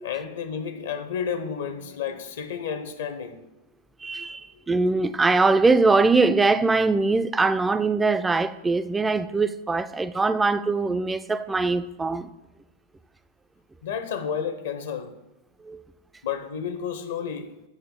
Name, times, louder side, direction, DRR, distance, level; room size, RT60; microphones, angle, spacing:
voice 1, 0.0-3.4 13.8-15.1 16.2-17.5, left 7 dB, 60° left, 0.7 m, -31 dB
voice 2, 4.0-12.3 15.7-15.8, right 3 dB, 10° right, 0.3 m, -22 dB
7.8 x 3.2 x 6.0 m
figure-of-eight pair, 90°, 0 cm